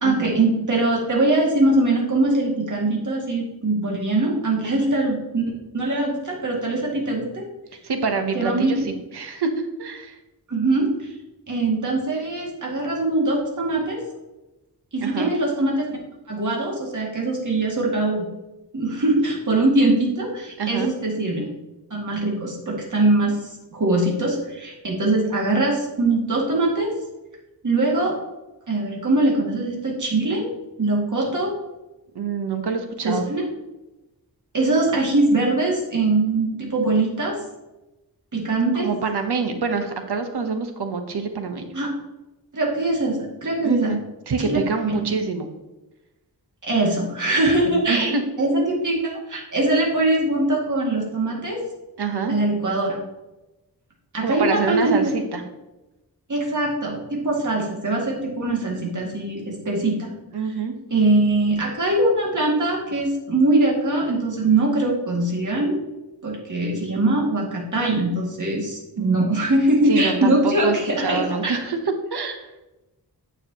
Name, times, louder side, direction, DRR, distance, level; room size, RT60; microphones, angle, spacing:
voice 1, 0.0-5.4 5.7-7.5 8.3-8.7 10.5-10.9 11.5-14.0 14.9-15.9 16.3-18.3 18.7-21.5 21.9-23.4 23.7-26.9 27.6-28.1 28.7-30.5 30.8-31.5 33.0-33.4 34.5-37.4 38.3-38.9 41.7-41.9 42.5-43.9 44.4-45.1 46.6-51.6 52.3-53.0 54.1-55.0 56.3-60.1 60.9-65.8 66.2-71.6, right 2 dB, 50° right, -3 dB, 2.3 m, -22 dB
voice 2, 7.8-10.2 15.0-15.3 20.6-20.9 32.1-33.3 38.8-41.8 43.6-44.0 44.3-45.5 47.6-48.2 52.0-52.3 54.2-55.4 60.3-60.7 69.0-69.2 69.9-70.8 71.0-72.5, right 4 dB, 85° right, 6 dB, 1.0 m, -26 dB
9.3 x 6.5 x 2.9 m, 1.0 s
wide cardioid pair, 105°, 39 cm